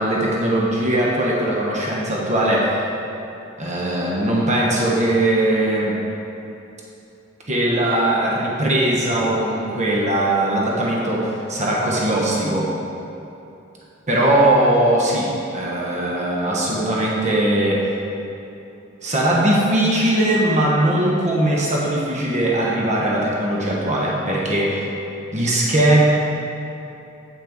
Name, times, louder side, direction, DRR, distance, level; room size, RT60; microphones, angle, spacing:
voice 1, 0.0-2.8 3.6-6.0 7.5-12.7 14.1-17.9 19.0-24.8 25.3-26.0, right 1 dB, 35° right, -4 dB, 1.1 m, -20 dB
8.5 x 5.9 x 4.6 m, 2.9 s
head